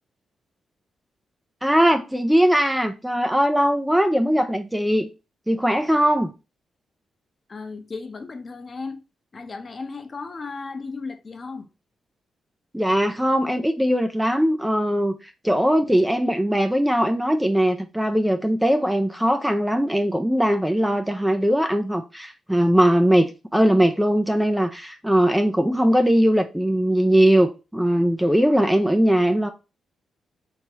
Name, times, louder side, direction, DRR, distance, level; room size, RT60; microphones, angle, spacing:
voice 1, 1.6-5.1 5.5-6.3 12.7-15.2 15.4-29.5, equal, 5° right, 0.4 m, -20 dB
voice 2, 7.5-9.0 9.3-11.7, left 4 dB, 35° left, 0.7 m, -35 dB
4.7 x 2.9 x 2.8 m
cardioid pair, 105°, 0 cm